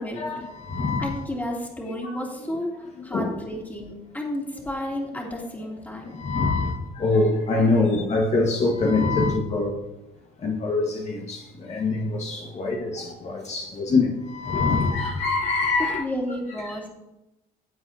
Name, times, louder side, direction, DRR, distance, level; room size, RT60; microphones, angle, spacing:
voice 1, 0.0-1.2 3.1-3.3 4.7-4.8 6.2-9.7 10.4-16.0 16.6-16.7, left 3 dB, 40° left, 1.5 m, -24 dB
voice 2, 1.0-2.7 3.0-6.1 15.8-16.9, left 1 dB, 10° left, 2.7 m, -32 dB
16.0 x 8.0 x 2.7 m
cardioid pair, 110°, 17 cm